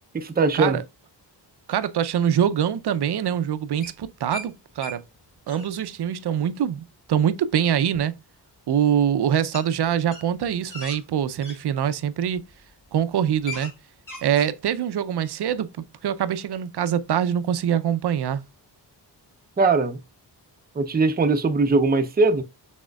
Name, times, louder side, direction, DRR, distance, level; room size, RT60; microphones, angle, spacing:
voice 1, 0.1-0.8 19.6-20.0 20.8-22.4, right 3 dB, 20° right, 0.5 m, -20 dB
voice 2, 1.7-5.0 5.5-8.1 8.7-12.4 12.9-13.7 14.2-15.7 16.0-18.4, right 9 dB, 65° right, 0.6 m, -24 dB
sound 1, 3.8-4.5 4.8-5.0 5.3-5.7 7.9-8.0 9.5-9.7 10.0-11.6 12.3-12.5 12.9-13.0 13.2-13.7 14.0-14.5, left 2 dB, 45° left, 1.9 m, -38 dB
6.3 x 3.6 x 2.3 m
wide cardioid pair, 145°, 42 cm